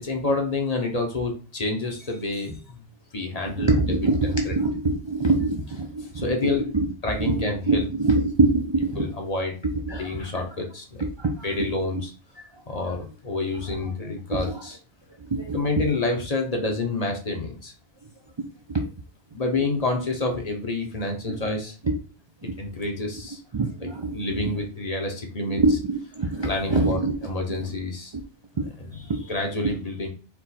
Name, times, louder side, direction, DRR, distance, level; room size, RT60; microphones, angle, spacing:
voice 1, 0.0-2.9 3.1-4.0 4.2-4.6 6.0-6.6 7.0-7.9 9.0-9.6 10.0-11.0 11.4-12.1 12.7-14.8 15.5-17.7 19.3-21.7 22.6-23.4 24.1-25.6 26.4-28.1 28.8-30.1, left 2 dB, 40° left, 2 dB, 0.9 m, -28 dB
voice 2, 3.3-6.9 7.2-9.1 9.6-10.4 11.0-11.7 11.9-12.0 12.7-12.8 14.3-14.6 15.2-15.9 18.4-18.9 21.8-22.0 22.4-22.6 23.5-24.5 25.5-27.2 27.5-27.7 28.6-28.7 29.1-29.2, right 3 dB, 40° right, 1 dB, 0.4 m, -25 dB
4.5 x 2.5 x 4.1 m, 0.37 s
omnidirectional pair, 1.0 m